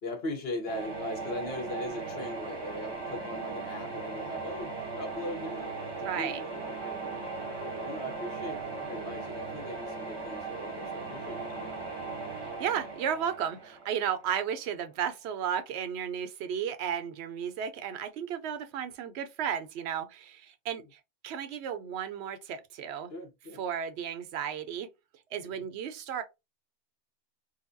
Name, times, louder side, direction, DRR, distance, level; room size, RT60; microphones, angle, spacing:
voice 1, 0.0-7.2 7.6-12.0 20.8-20.9 23.1-23.6 25.4-25.6, left 1 dB, 65° left, 1.2 m, -40 dB
sound 1, 0.7-14.5, right 4 dB, 25° right, 0.8 m, -38 dB
voice 2, 6.0-6.4 12.4-23.1 23.6-24.9 25.3-26.2, right 8 dB, 75° right, 0.8 m, -34 dB
4.0 x 2.1 x 2.5 m
omnidirectional pair, 1.2 m